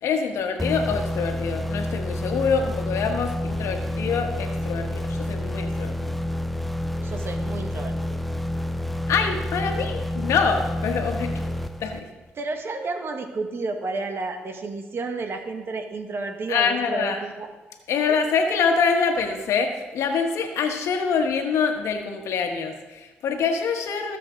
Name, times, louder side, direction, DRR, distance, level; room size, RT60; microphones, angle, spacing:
voice 1, 0.0-5.9 9.1-11.4 11.8-12.1 16.5-17.2 17.9-24.2, left 5 dB, 75° left, 4 dB, 1.5 m, -25 dB
sound 1, 0.6-12.3, left 1 dB, ahead, 0.7 m, -29 dB
voice 2, 7.0-8.2 12.3-17.5 18.1-18.2, right 3 dB, 55° right, 5 dB, 1.9 m, -31 dB
21.0 x 7.7 x 3.9 m, 1.2 s
supercardioid pair, 55°, 5 cm